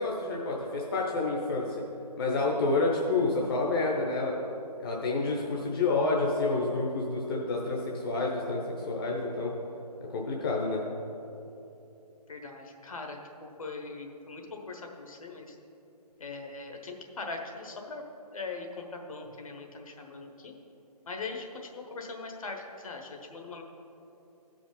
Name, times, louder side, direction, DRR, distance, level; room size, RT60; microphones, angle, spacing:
voice 1, 0.0-1.8 2.2-4.4 4.8-8.6 8.9-9.5 10.1-10.8, left 3 dB, 35° left, -2 dB, 0.9 m, -29 dB
voice 2, 12.3-15.5 16.2-18.0 18.3-20.5 21.1-23.6, left 3 dB, 55° left, 2 dB, 1.4 m, -41 dB
13.0 x 5.2 x 5.3 m, 2.9 s
figure-of-eight pair, 150°, 21 cm